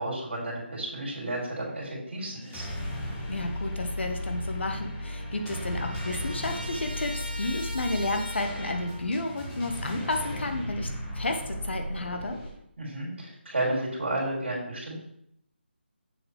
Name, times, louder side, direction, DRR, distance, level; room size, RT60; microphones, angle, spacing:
voice 1, 0.0-2.7 12.8-15.0, right 1 dB, 65° right, -4 dB, 3.0 m, -32 dB
sound 1, 2.3-12.5, left 1 dB, 10° left, 1.2 m, -35 dB
voice 2, 3.3-10.9 11.1-12.4, left 2 dB, 70° left, 4 dB, 1.2 m, -32 dB
Trumpet, 4.3-4.4 4.7-9.1, equal, 45° right, 2.6 m, -42 dB
7.1 x 6.8 x 3.2 m, 0.72 s
figure-of-eight pair, 160°, 6 cm